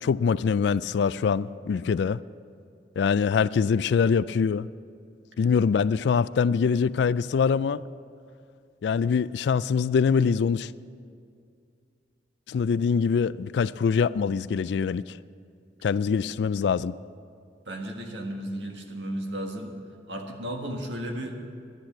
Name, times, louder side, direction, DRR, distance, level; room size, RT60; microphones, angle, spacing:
voice 1, 0.0-2.2 3.0-4.7 5.4-7.8 8.8-10.7 12.5-15.2 15.8-17.0, left 6 dB, 65° left, 18 dB, 0.3 m, -24 dB
voice 2, 17.6-19.8 20.1-21.4, right 1 dB, 75° right, 3 dB, 1.6 m, -34 dB
11.5 x 10.5 x 7.4 m, 2.3 s
head